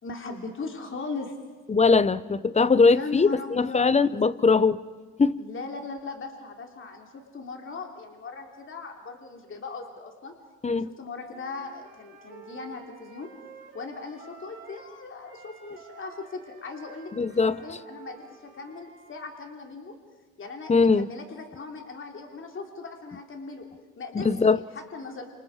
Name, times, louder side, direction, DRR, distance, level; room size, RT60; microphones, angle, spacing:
voice 1, 0.0-1.3 2.8-4.1 5.4-10.3 10.7-13.3 13.7-20.0 20.4-23.7 24.0-25.3, left 3 dB, 40° left, 3.1 m, -39 dB
voice 2, 1.7-4.8 5.2-5.4 10.6-10.9 17.2-17.6 20.7-21.1 24.1-24.6, left 4 dB, 20° left, 0.8 m, -21 dB
Wind instrument woodwind instrument, 11.3-14.9 15.2-19.2, right 5 dB, 40° right, 4.3 m, -50 dB
28.5 x 27.5 x 4.8 m
cardioid pair, 90°, 30 cm